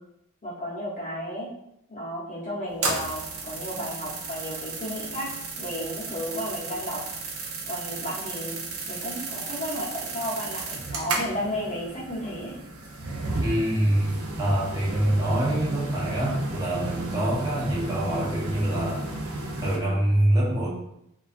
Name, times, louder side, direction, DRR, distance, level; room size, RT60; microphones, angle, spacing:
voice 1, 0.4-1.5 1.9-5.3 5.6-7.0 7.7-8.6 8.9-12.5, equal, 35° left, -6 dB, 0.7 m, -33 dB
sound 1, 2.7-19.8, right 3 dB, 70° right, 0.4 m, -33 dB
voice 2, 13.4-19.1 19.6-20.7, right 1 dB, 15° right, -5 dB, 0.5 m, -25 dB
2.3 x 2.2 x 2.4 m, 0.81 s
head